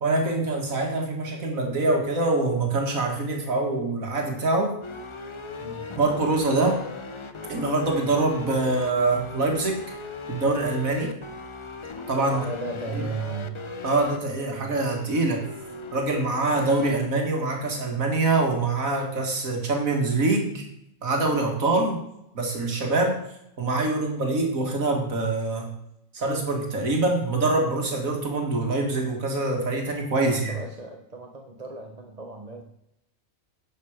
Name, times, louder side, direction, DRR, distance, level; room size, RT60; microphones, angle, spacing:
voice 1, 0.0-4.8 6.0-6.8 7.5-10.0 10.3-11.1 12.1-12.4 12.9-13.0 13.8-15.5 15.9-20.6 21.0-22.0 22.3-23.2 23.6-25.7 26.1-30.6, right 2 dB, 85° right, 1 dB, 2.3 m, -24 dB
sound 1, 4.8-16.9, left 4 dB, 30° left, 0.6 m, -38 dB
voice 2, 12.2-13.6 14.6-14.7 30.2-32.6, right 4 dB, 30° right, 2 dB, 1.1 m, -35 dB
11.0 x 7.6 x 5.1 m, 0.80 s
omnidirectional pair, 1.4 m